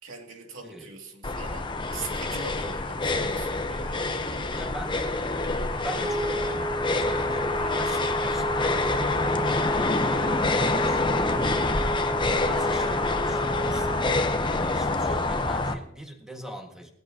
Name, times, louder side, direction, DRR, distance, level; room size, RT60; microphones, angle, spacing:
voice 1, 0.0-4.0 7.5-7.9 12.3-12.6, right 4 dB, 75° right, 2 dB, 2.5 m, -41 dB
sound 1, 1.2-15.7, left 2 dB, 25° left, 0.8 m, -26 dB
voice 2, 4.5-5.0 5.7-9.4 9.7-11.7 12.2-14.2 14.5-16.9, equal, 5° right, 1 dB, 1.7 m, -41 dB
sound 2, 6.0-14.4, right 2 dB, 30° right, 0.6 m, -32 dB
19.5 x 14.0 x 2.8 m, 0.78 s
head